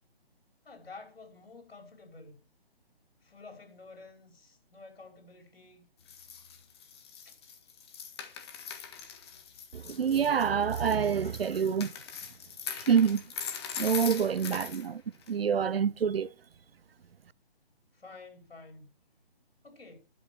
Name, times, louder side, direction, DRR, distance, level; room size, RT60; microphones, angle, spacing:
voice 1, 0.7-2.4 3.2-5.8 7.3-7.4 17.9-18.9 19.6-20.0, left 3 dB, 70° left, 5.4 m, -50 dB
sound 1, 6.1-14.9 15.2-15.3, left 7 dB, 25° left, 1.6 m, -41 dB
voice 2, 9.7-11.9 12.9-13.2 13.8-15.0 15.3-16.3, right 7 dB, 70° right, 0.7 m, -26 dB
12.0 x 6.4 x 7.8 m
figure-of-eight pair, 155°, 31 cm